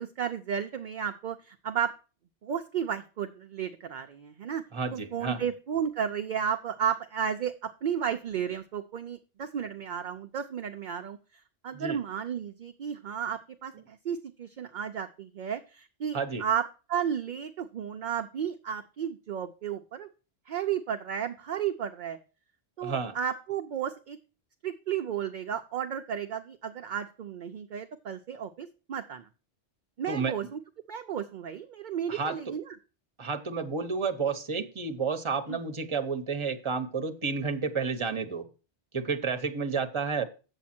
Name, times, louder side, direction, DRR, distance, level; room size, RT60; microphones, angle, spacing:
voice 1, 0.0-1.9 2.4-11.2 11.6-16.6 16.9-20.1 20.5-22.2 22.8-24.2 24.6-29.3 30.0-30.6 30.9-32.8 35.5-35.6, right 8 dB, 55° right, 6 dB, 0.6 m, -33 dB
voice 2, 4.7-5.5 11.7-12.0 16.1-16.4 22.8-23.1 30.1-30.4 32.1-32.6 33.2-38.5 38.9-40.2, right 5 dB, 30° right, 7 dB, 0.8 m, -31 dB
8.1 x 7.3 x 4.3 m, 0.34 s
omnidirectional pair, 1.2 m